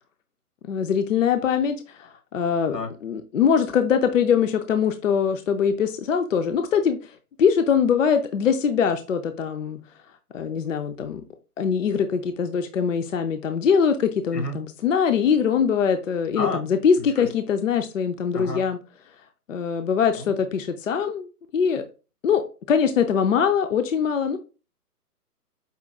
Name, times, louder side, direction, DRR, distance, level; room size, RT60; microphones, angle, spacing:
voice 1, 0.7-7.1 7.4-9.8 10.3-11.2 11.6-18.8 19.5-21.3 21.5-21.8 22.2-22.4 22.7-24.4, left 7 dB, 55° left, 0.5 m, -22 dB
voice 2, 2.7-2.9 14.3-14.6 16.3-16.6 17.2-17.3 18.3-18.6 20.2-20.3, left 2 dB, 90° left, 1.9 m, -29 dB
5.1 x 2.3 x 3.4 m
hypercardioid pair, 150°, 47 cm